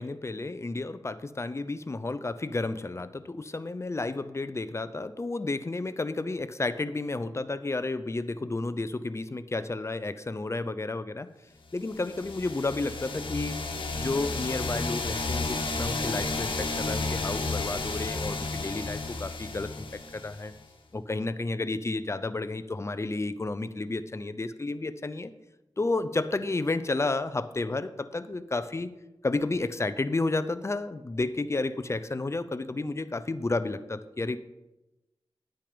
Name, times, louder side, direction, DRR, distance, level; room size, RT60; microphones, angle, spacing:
voice 1, 0.0-11.3 11.7-13.6 14.0-20.5 20.9-25.3 25.8-28.9 29.2-34.4, left 2 dB, 30° left, 13 dB, 0.7 m, -31 dB
sound 1, 11.9-20.6, left 3 dB, 70° left, 1.5 m, -32 dB
10.5 x 9.0 x 5.2 m, 0.99 s
wide cardioid pair, 70°, 9 cm